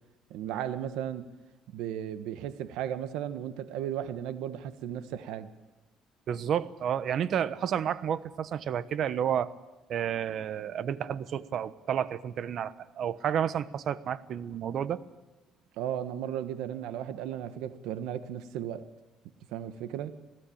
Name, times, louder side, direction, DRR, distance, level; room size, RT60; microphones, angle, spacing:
voice 1, 0.3-1.3 1.7-5.5 15.8-18.9 19.5-20.2, right 10 dB, 90° right, 11 dB, 1.3 m, -35 dB
voice 2, 6.3-9.5 9.9-15.0, right 9 dB, 55° right, 15 dB, 1.1 m, -31 dB
27.5 x 18.0 x 8.7 m, 1.1 s
cardioid pair, 125°, 0 cm